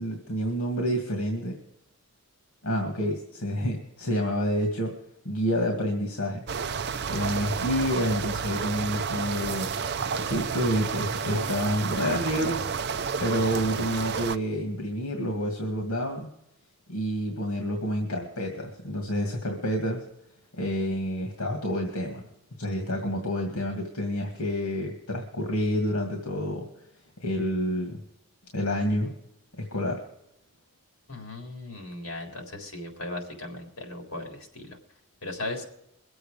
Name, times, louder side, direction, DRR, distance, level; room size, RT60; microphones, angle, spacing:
voice 1, 0.0-1.6 2.6-4.9 5.2-6.5 7.1-16.3 16.9-20.0 20.5-22.2 22.6-26.7 27.2-28.0 28.5-29.1 29.6-30.0, equal, 85° left, 2 dB, 2.3 m, -29 dB
sound 1, 6.5-14.4, right 6 dB, 50° right, 0.5 m, -31 dB
voice 2, 31.1-34.8 35.2-35.6, left 2 dB, 65° left, 3 dB, 3.8 m, -37 dB
22.5 x 7.9 x 5.1 m, 0.78 s
head